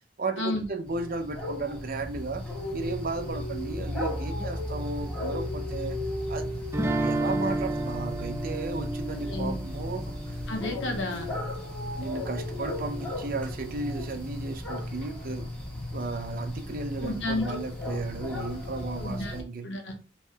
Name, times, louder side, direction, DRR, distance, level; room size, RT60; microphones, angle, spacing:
voice 1, 0.2-2.4 2.7-6.0 6.3-6.5 7.0-10.4 12.0-15.5 15.9-19.7, right 3 dB, 50° right, 0.7 m, -34 dB
sound 1, 0.8-19.4, left 1 dB, 10° left, 1.5 m, -35 dB
sound 2, 6.7-11.7, right 2 dB, 15° right, 0.4 m, -32 dB
voice 2, 10.5-11.3 17.0-17.5 19.0-19.4 19.6-19.9, left 2 dB, 75° left, 1.2 m, -31 dB
4.7 x 3.1 x 3.4 m
head